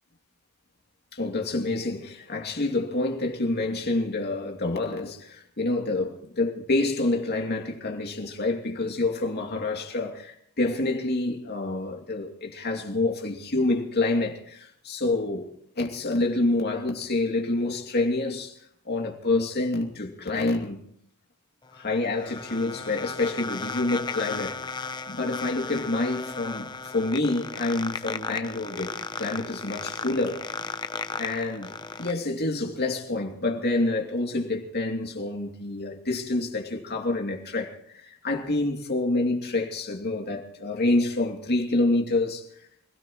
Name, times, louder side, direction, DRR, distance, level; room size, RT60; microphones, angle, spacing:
voice 1, 1.1-15.5 15.8-18.6 18.9-20.8 21.7-30.5 31.2-42.4, left 2 dB, 50° left, 2.7 m, -27 dB
sound 1, 21.6-32.1, left 4 dB, 20° left, 0.6 m, -35 dB
27.5 x 17.0 x 3.1 m
head